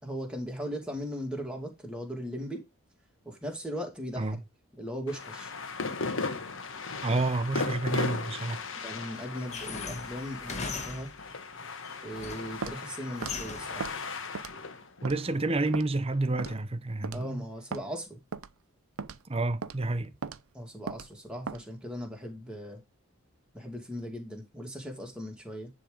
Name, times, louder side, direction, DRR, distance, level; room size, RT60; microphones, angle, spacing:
voice 1, 0.0-2.6 3.2-4.4 4.8-5.5 8.8-11.1 12.0-13.8 17.1-18.2 20.5-22.8 23.5-25.7, equal, 5° right, 2.4 m, -38 dB
sound 1, 5.1-16.5, left 4 dB, 60° left, 1.4 m, -37 dB
voice 2, 7.0-8.6 15.0-17.5 19.3-20.1, right 2 dB, 30° right, 0.7 m, -29 dB
sound 2, 9.5-11.3 11.8-12.6 13.2-13.9, left 4 dB, 35° left, 1.2 m, -39 dB
Walk footsteps, 12.6-12.8 13.2-13.4 13.8-14.0 14.4-14.7 15.1-15.2 15.7-15.9 16.4-16.6 17.0-17.2 17.7-17.9 18.3-18.5 19.0-19.2 19.6-19.8 20.2-20.4 20.9-21.1 21.5-21.6, right 5 dB, 80° right, 0.6 m, -37 dB
10.0 x 3.7 x 5.1 m
head